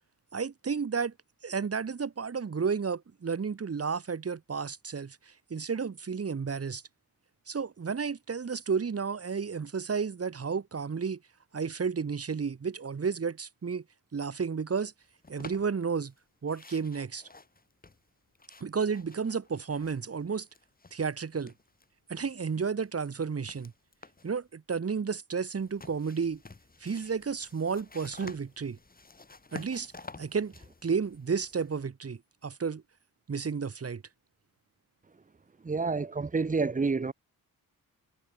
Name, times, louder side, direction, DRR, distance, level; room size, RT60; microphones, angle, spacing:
voice 1, 0.3-1.1 1.4-6.8 7.5-11.2 11.5-13.8 14.1-14.9 15.3-16.1 16.4-17.2 18.6-20.5 20.9-21.5 22.1-23.7 24.2-26.4 26.8-28.8 29.5-29.9 30.2-30.5 30.8-32.8 33.3-34.0, right 5 dB, 40° right, 3.9 m, -32 dB
sound 1, 15.2-16.2 16.5-20.2 20.5-21.9 22.2-24.4 25.6-31.8, left 3 dB, 25° left, 6.1 m, -51 dB
voice 2, 35.6-37.1, right 4 dB, 20° right, 1.4 m, -28 dB
cardioid pair, 105°, 36 cm